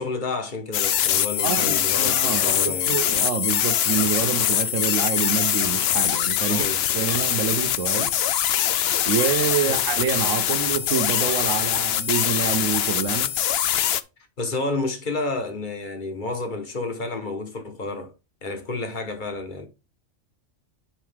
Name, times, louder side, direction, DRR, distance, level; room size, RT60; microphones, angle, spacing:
voice 1, 0.0-3.0 6.5-6.8 9.6-9.8 14.4-18.1 18.4-19.7, left 3 dB, 40° left, 1.5 m, -30 dB
sound 1, 0.7-14.0, left 11 dB, 65° left, 0.7 m, -23 dB
voice 2, 1.4-6.7 6.9-8.1 9.1-13.3, right 7 dB, 85° right, 1.2 m, -27 dB
10.5 x 4.7 x 3.6 m
omnidirectional pair, 1.3 m